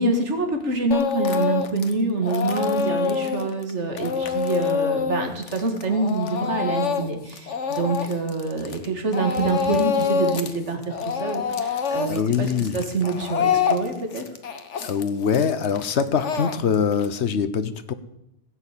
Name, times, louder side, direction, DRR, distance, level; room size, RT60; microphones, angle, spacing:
voice 1, 0.0-14.2, right 3 dB, 80° right, 4 dB, 2.2 m, -26 dB
Speech / Crying sobbing, 0.9-1.9 2.2-8.9 9.1-10.6 10.8-17.1, left 6 dB, 90° left, 1.4 m, -26 dB
voice 2, 12.1-12.8 14.8-17.9, left 6 dB, 70° left, 13 dB, 1.2 m, -23 dB
16.0 x 8.0 x 8.3 m, 0.83 s
omnidirectional pair, 1.2 m